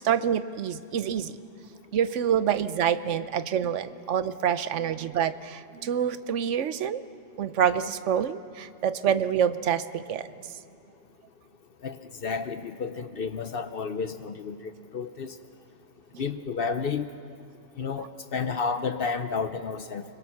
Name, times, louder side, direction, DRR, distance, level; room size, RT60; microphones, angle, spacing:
voice 1, 0.0-1.4 1.9-7.0 7.4-10.3, right 9 dB, 70° right, 13 dB, 1.0 m, -27 dB
voice 2, 11.8-15.3 16.2-17.1 17.8-20.0, left 5 dB, 55° left, 10 dB, 0.8 m, -31 dB
29.5 x 21.0 x 5.9 m, 2.4 s
omnidirectional pair, 1.3 m